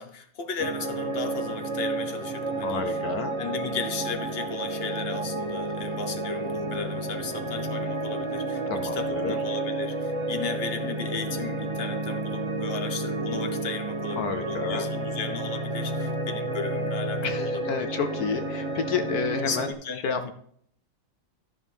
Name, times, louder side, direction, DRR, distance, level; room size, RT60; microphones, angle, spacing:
voice 1, 0.0-3.0 3.4-8.6 8.9-17.9 19.4-20.3, left 5 dB, 35° left, 6 dB, 1.2 m, -36 dB
sound 1, 0.6-19.7, right 2 dB, 25° right, 0.7 m, -31 dB
voice 2, 2.6-3.3 8.7-9.4 14.2-14.9 17.2-19.7 20.0-20.3, left 6 dB, 65° left, 8 dB, 1.0 m, -30 dB
13.0 x 7.1 x 3.5 m, 0.63 s
omnidirectional pair, 2.1 m